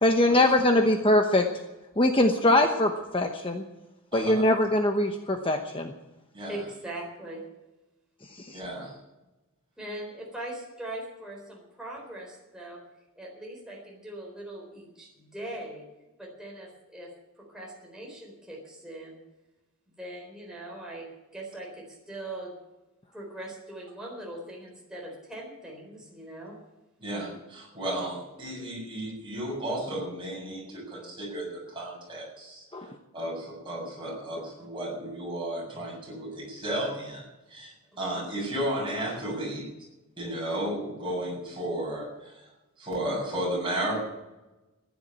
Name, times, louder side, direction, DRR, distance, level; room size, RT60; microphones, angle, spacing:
voice 1, 0.0-1.5 2.0-3.6 4.1-5.9 8.3-8.6 32.7-32.9, left 1 dB, 25° left, 4 dB, 1.0 m, -22 dB
voice 2, 4.1-4.4 6.3-6.5 8.5-8.9 27.0-32.6 33.1-37.2 37.5-39.7 40.2-42.3 42.8-44.0, right 1 dB, 20° right, -3 dB, 7.0 m, -33 dB
voice 3, 6.5-7.4 9.8-12.8 13.2-15.8 16.2-19.2 19.9-22.5 23.1-26.6 27.9-28.0 34.6-34.7 37.9-38.2 41.1-41.2, right 1 dB, 5° right, -3 dB, 4.1 m, -41 dB
15.0 x 10.5 x 8.5 m, 1.0 s
head